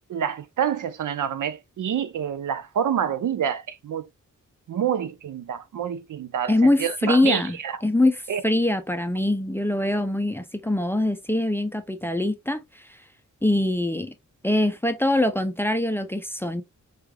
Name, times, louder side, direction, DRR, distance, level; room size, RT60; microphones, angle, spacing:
voice 1, 0.1-4.1 4.7-7.7 8.3-8.4, right 8 dB, 75° right, 0.5 m, -27 dB
voice 2, 6.5-13.0 13.4-14.1 14.4-16.6, left 1 dB, 5° left, 0.4 m, -23 dB
4.8 x 3.2 x 2.2 m
wide cardioid pair, 110°, 31 cm